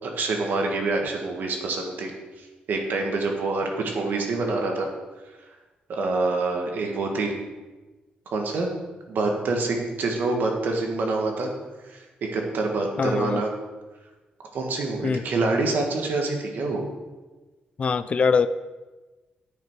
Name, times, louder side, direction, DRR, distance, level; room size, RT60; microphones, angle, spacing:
voice 1, 0.0-2.1 2.7-4.9 5.9-7.3 8.3-8.7 9.1-11.5 12.3-13.5 14.5-16.8, right 3 dB, 70° right, 2 dB, 1.5 m, -26 dB
voice 2, 13.0-13.4 15.0-15.2 17.8-18.5, left 5 dB, 40° left, 13 dB, 0.3 m, -22 dB
9.5 x 5.5 x 4.6 m, 1.2 s
cardioid pair, 120°, 3 cm